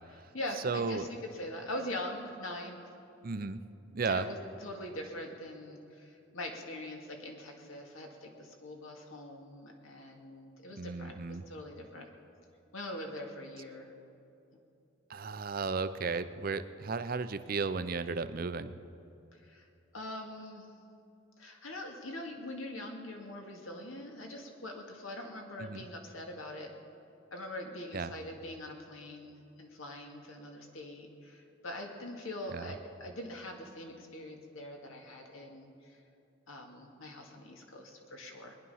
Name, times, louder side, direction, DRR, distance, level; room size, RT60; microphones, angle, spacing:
voice 1, 0.1-2.8 4.0-12.1 12.7-13.9 19.3-19.7 19.9-20.7 21.4-26.7 27.3-36.0 36.5-38.6, left 1 dB, 90° left, 2 dB, 2.1 m, -43 dB
voice 2, 0.6-1.1 3.2-3.6 3.9-4.3 10.8-11.4 15.1-18.7 25.6-25.8 27.9-28.1 32.5-32.7, right 4 dB, 45° right, 12 dB, 0.5 m, -34 dB
21.0 x 10.5 x 5.6 m, 2.8 s
head